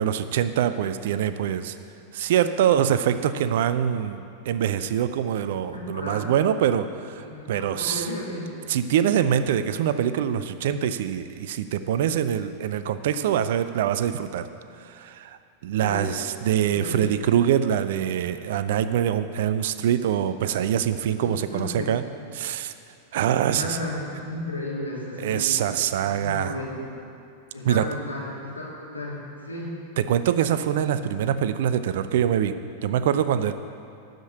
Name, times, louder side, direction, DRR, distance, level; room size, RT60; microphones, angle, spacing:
voice 1, 0.0-1.7 2.1-8.0 8.7-14.5 14.8-15.4 15.6-22.0 22.3-22.7 23.1-23.8 25.2-26.5 27.6-27.9 30.0-32.5 32.8-33.5, right 9 dB, 55° right, 12 dB, 0.5 m, -24 dB
voice 2, 5.7-6.3 7.2-8.5 15.8-16.1 16.6-17.0 21.1-22.0 23.4-25.7 26.1-26.9 27.5-28.7 28.9-29.8, left 1 dB, 80° left, -5 dB, 2.6 m, -34 dB
12.5 x 5.2 x 8.1 m, 2.6 s
figure-of-eight pair, 90°, 0 cm